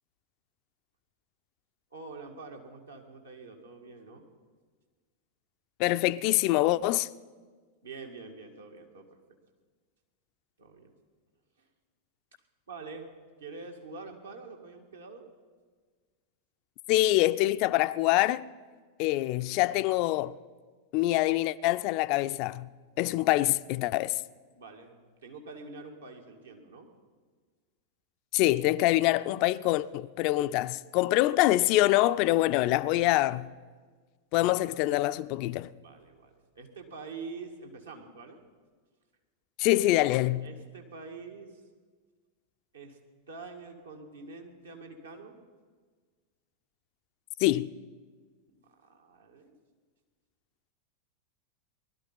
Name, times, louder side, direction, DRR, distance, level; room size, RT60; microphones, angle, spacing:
voice 1, 1.9-4.3 7.8-9.2 10.6-10.9 11.6-11.7 12.7-13.1 13.4-15.3 19.7-19.9 24.6-26.9 34.4-34.8 35.8-38.4 40.4-41.6 42.7-43.0 43.3-45.4 48.8-49.6, right 4 dB, 70° right, 2.0 m, -46 dB
voice 2, 5.8-7.1 16.9-18.5 19.0-20.4 20.9-22.7 23.0-24.2 28.3-33.5 34.3-35.7 39.6-40.5 47.4-47.7, left 17 dB, 45° left, 0.4 m, -25 dB
19.0 x 12.5 x 5.6 m
figure-of-eight pair, 90°, 0 cm